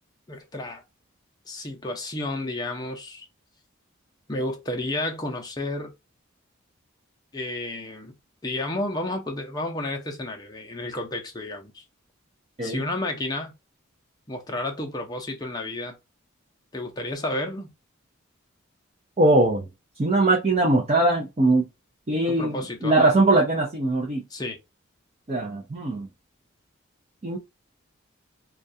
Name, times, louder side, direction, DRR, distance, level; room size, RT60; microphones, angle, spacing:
voice 1, 0.3-0.8 1.5-3.3 4.3-5.9 7.3-8.1 8.4-11.8 12.6-13.5 14.3-16.0 16.7-17.7 22.3-23.1 24.3-24.6, left 1 dB, 20° left, 0.5 m, -31 dB
voice 2, 19.2-19.7 20.0-21.7 22.1-24.2 25.3-26.1 27.2-27.4, right 2 dB, 30° right, 0.5 m, -21 dB
2.3 x 2.3 x 2.6 m
head